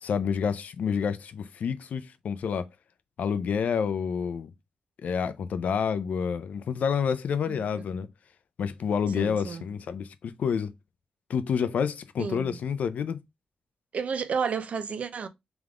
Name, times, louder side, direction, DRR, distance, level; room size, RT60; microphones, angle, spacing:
voice 1, 0.0-2.7 3.2-4.5 5.0-8.1 8.6-10.7 11.3-13.2, left 6 dB, 80° left, 0.5 m, -28 dB
voice 2, 9.1-9.6 12.2-12.6 13.9-15.3, right 6 dB, 60° right, 0.6 m, -31 dB
3.5 x 3.5 x 3.6 m
wide cardioid pair, 125°, 3 cm